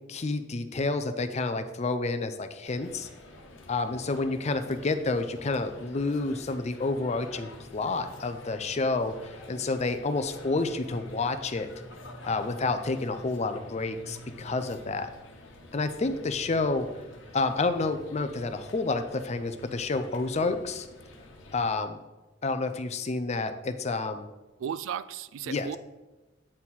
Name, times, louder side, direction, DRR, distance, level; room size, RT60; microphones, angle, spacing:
voice 1, 0.0-3.1 3.7-9.1 9.5-11.7 12.2-15.1 15.7-16.9 17.3-20.9 21.5-22.0 22.4-24.3 25.5-25.7, left 3 dB, 35° left, 9 dB, 0.5 m, -29 dB
sound 1, 2.6-21.7, left 1 dB, 90° left, 1.1 m, -48 dB
voice 2, 24.6-25.8, right 8 dB, 80° right, 15 dB, 0.3 m, -35 dB
8.8 x 4.2 x 4.2 m, 1.1 s
head